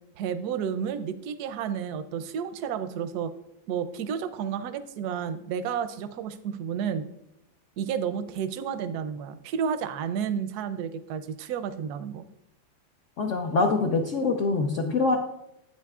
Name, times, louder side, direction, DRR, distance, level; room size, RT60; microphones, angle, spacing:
voice 1, 0.2-3.3 3.7-7.1 7.8-12.3, right 7 dB, 70° right, 11 dB, 1.0 m, -31 dB
voice 2, 13.2-15.2, left 3 dB, 60° left, 2 dB, 0.8 m, -24 dB
11.0 x 8.6 x 2.4 m, 0.85 s
omnidirectional pair, 2.1 m